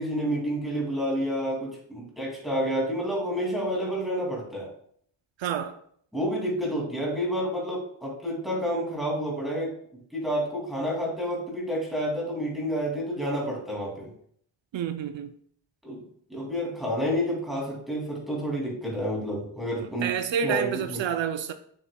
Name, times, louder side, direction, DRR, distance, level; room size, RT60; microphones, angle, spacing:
voice 1, 0.0-4.7 6.1-9.7 10.1-14.1 15.8-16.0 16.3-20.1 20.4-21.0, equal, ahead, 2.3 m, -29 dB
voice 2, 5.4-5.8 14.7-15.3 19.8-21.5, right 8 dB, 80° right, 0.5 m, -29 dB
7.3 x 6.6 x 2.2 m
wide cardioid pair, 130°, 45 cm